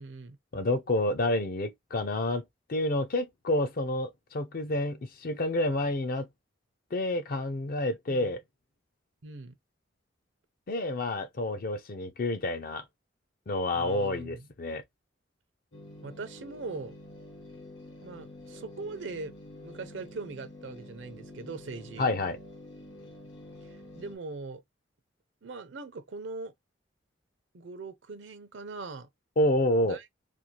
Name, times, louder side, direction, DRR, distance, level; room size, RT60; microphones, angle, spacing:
voice 1, 0.0-0.4 8.1-8.3 9.2-9.5 13.7-14.5 16.0-17.0 18.0-19.3 19.6-22.1 23.6-24.6 25.4-26.5 27.5-29.1 29.8-30.1, right 3 dB, 70° right, 0.6 m, -41 dB
voice 2, 0.5-2.4 2.7-6.3 6.9-8.4 10.7-12.8 13.5-14.8 22.0-22.4 29.4-30.0, left 1 dB, 50° left, 0.5 m, -29 dB
sound 1, 15.7-24.2, left 1 dB, 75° left, 1.0 m, -48 dB
2.6 x 2.4 x 2.9 m
head